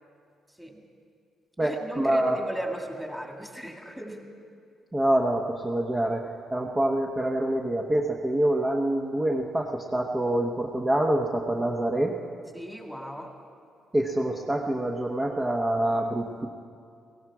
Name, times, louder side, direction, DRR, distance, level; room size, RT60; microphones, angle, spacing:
voice 1, 0.5-0.9 1.6-4.3 12.5-13.3, right 1 dB, ahead, 2 dB, 2.1 m, -37 dB
voice 2, 1.6-2.4 4.9-12.1 13.9-16.5, right 1 dB, 15° right, 0 dB, 1.1 m, -26 dB
16.5 x 16.0 x 4.8 m, 2.3 s
cardioid pair, 90°, 0 cm